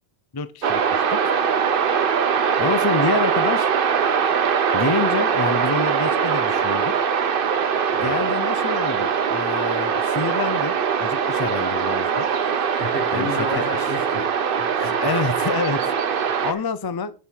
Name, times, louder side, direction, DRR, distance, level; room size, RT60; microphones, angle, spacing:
voice 1, 0.3-1.2 2.6-3.7 4.7-6.9 7.9-12.3 13.1-13.6 15.0-17.1, left 4 dB, 30° left, 13 dB, 0.5 m, -27 dB
sound 1, 0.6-16.5, right 7 dB, 60° right, 1.0 m, -22 dB
voice 2, 12.8-14.3 14.6-14.9 16.3-16.6, left 1 dB, 85° left, -1 dB, 3.7 m, -31 dB
8.1 x 7.4 x 4.5 m, 0.37 s
omnidirectional pair, 1.1 m